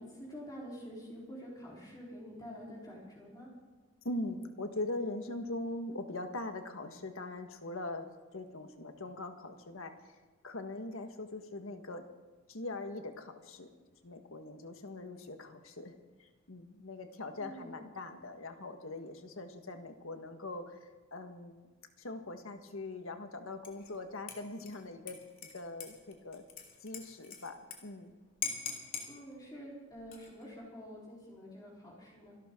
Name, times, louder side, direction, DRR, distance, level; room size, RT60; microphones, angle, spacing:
voice 1, 0.0-3.5 17.4-17.8 29.1-32.4, equal, 20° left, -5 dB, 4.1 m, -47 dB
voice 2, 4.0-10.2 10.4-12.0 12.5-13.7 14.0-15.9 16.2-21.7 22.0-26.4 26.8-28.1, left 2 dB, 70° left, 6 dB, 1.6 m, -42 dB
Dishes pots and pans / Liquid, 23.6-23.9 24.3-27.8 28.0-28.1 28.4-29.1 30.0-30.5, left 6 dB, 40° left, 2.6 m, -42 dB
27.0 x 12.0 x 3.8 m, 1.3 s
head